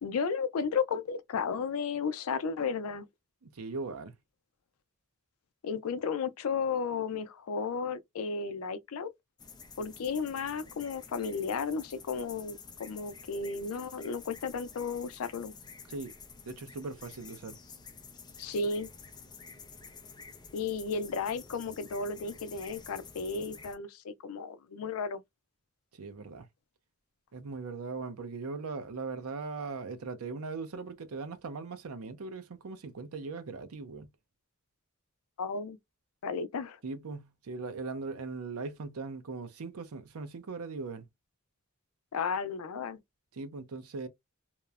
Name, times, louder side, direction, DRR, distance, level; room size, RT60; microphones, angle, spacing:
voice 1, 0.0-3.1 5.6-9.1 9.8-15.5 18.4-18.9 20.5-25.2 35.4-35.8 36.2-36.8 42.1-43.0, left 5 dB, 85° left, 0.4 m, -33 dB
voice 2, 3.4-4.1 15.9-16.1 16.4-17.6 25.9-26.5 27.3-34.1 36.8-41.0 43.3-44.1, right 4 dB, 90° right, 0.6 m, -39 dB
sound 1, 9.4-23.7, left 5 dB, 20° left, 0.4 m, -50 dB
2.9 x 2.0 x 2.3 m
head